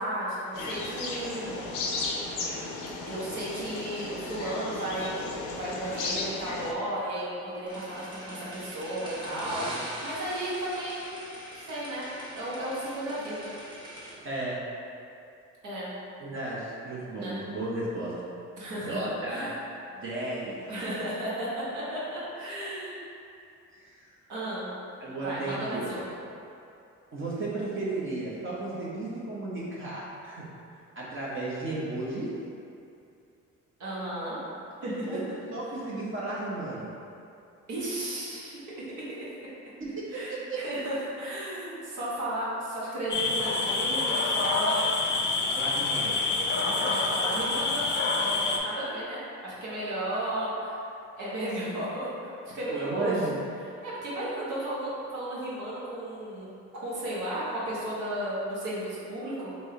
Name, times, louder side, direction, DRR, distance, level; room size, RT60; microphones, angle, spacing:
voice 1, 0.0-1.7 3.1-11.3 11.5-12.1 12.3-13.5 15.6-15.9 17.1-17.4 18.6-19.0 19.3-19.6 20.7-23.0 24.3-24.7 25.2-26.1 33.8-34.4 34.8-35.1 37.7-38.6 39.0-39.1 40.1-44.9 46.5-50.8 51.2-52.1 52.5-53.2 53.6-59.5, right 1 dB, 80° right, -8 dB, 1.3 m, -34 dB
sound 1, 0.5-6.7, left 3 dB, 85° left, 0.6 m, -35 dB
sound 2, 7.7-14.1, equal, 15° right, 1.3 m, -42 dB
voice 2, 14.2-14.6 16.2-18.1 18.8-19.5 19.9-20.6 23.7-24.0 25.0-26.1 27.1-30.4 31.0-32.3 35.1-36.9 39.8-40.6 45.5-46.2 52.7-53.3, right 2 dB, 40° right, -7 dB, 0.8 m, -34 dB
sound 3, 43.1-48.6, left 3 dB, 35° left, 0.5 m, -27 dB
3.3 x 2.7 x 4.4 m, 2.6 s
cardioid pair, 90°, 30 cm